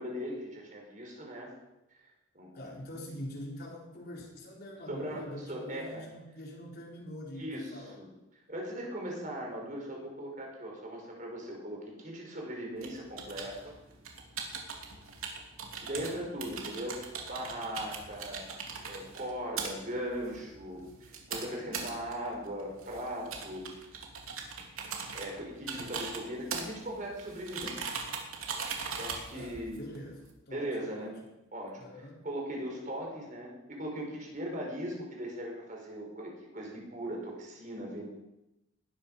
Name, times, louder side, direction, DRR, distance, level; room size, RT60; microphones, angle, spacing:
voice 1, 0.0-1.5 2.3-2.7 4.9-6.0 7.3-7.7 8.0-8.1 8.5-13.7 15.8-18.4 18.9-20.9 21.3-23.7 25.1-28.0 29.0-29.8 30.5-31.2 31.5-31.8 32.2-38.1, equal, 40° right, 0 dB, 4.9 m, -39 dB
voice 2, 2.5-8.0 15.9-16.1 29.3-31.1 31.8-32.2, equal, 50° left, -1 dB, 4.2 m, -44 dB
sound 1, 12.8-30.3, right 5 dB, 85° right, 3.0 m, -41 dB
19.5 x 13.0 x 5.6 m, 0.93 s
head